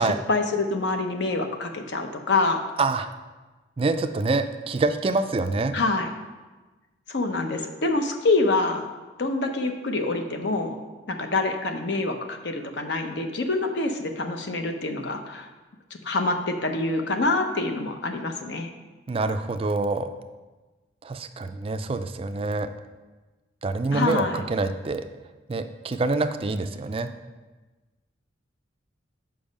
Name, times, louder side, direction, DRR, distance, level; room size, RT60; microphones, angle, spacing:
voice 1, 0.0-2.6 5.7-6.1 7.1-8.9 9.2-10.8 11.1-15.5 16.0-18.7 23.9-24.4, left 3 dB, 60° left, 5 dB, 0.7 m, -26 dB
voice 2, 3.8-5.8 19.1-20.1 21.0-22.7 23.6-25.1 25.5-27.1, right 3 dB, 30° right, 9 dB, 0.4 m, -26 dB
7.1 x 5.3 x 5.2 m, 1.2 s
head